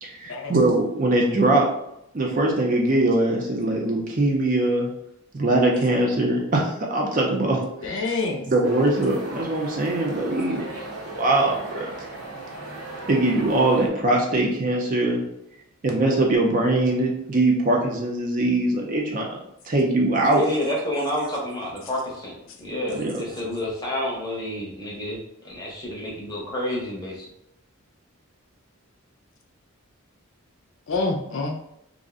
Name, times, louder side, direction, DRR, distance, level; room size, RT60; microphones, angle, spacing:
voice 1, 0.0-1.7 2.1-4.9 5.3-8.0 8.5-10.7 11.1-11.9 13.1-15.2 15.8-19.4 19.6-20.4 22.9-23.2, right 2 dB, 35° right, -1 dB, 0.4 m, -22 dB
voice 2, 7.8-8.5 30.9-31.6, left 3 dB, 60° left, 1 dB, 0.4 m, -27 dB
sound 1, 8.6-13.9, right 2 dB, 75° right, 0.7 m, -37 dB
voice 3, 20.3-25.2 25.4-27.3, left 1 dB, 20° left, -3 dB, 0.6 m, -29 dB
2.4 x 2.0 x 3.5 m, 0.79 s
head